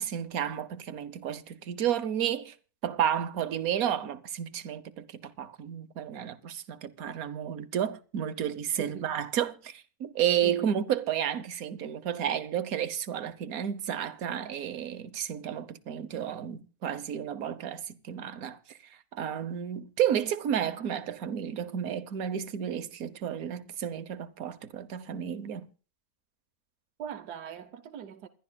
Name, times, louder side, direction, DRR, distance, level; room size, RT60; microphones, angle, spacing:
voice 1, 0.0-2.5 2.8-25.7, right 9 dB, 65° right, 1.3 m, -32 dB
voice 2, 8.8-9.2 10.4-10.7 27.0-28.3, right 8 dB, 90° right, 1.5 m, -41 dB
28.5 x 12.0 x 2.3 m
omnidirectional pair, 1.7 m